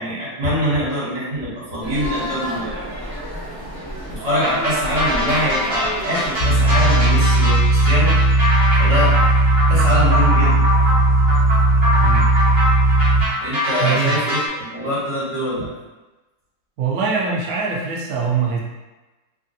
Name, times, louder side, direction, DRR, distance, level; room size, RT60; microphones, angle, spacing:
voice 1, 0.0-2.9 4.1-8.2 8.8-9.1 9.7-10.6 13.4-15.7, equal, 60° right, -8 dB, 1.7 m, -24 dB
sound 1, 1.8-7.1, equal, 25° left, 0.5 m, -30 dB
sound 2, 4.4-14.5, left 1 dB, 15° right, 1.2 m, -23 dB
sound 3, 6.4-13.2, right 2 dB, 85° left, 1.4 m, -16 dB
voice 2, 12.0-12.3 13.8-14.2 16.8-18.6, right 5 dB, 85° right, -2 dB, 0.8 m, -22 dB
3.4 x 2.3 x 2.6 m, 1.1 s
omnidirectional pair, 2.1 m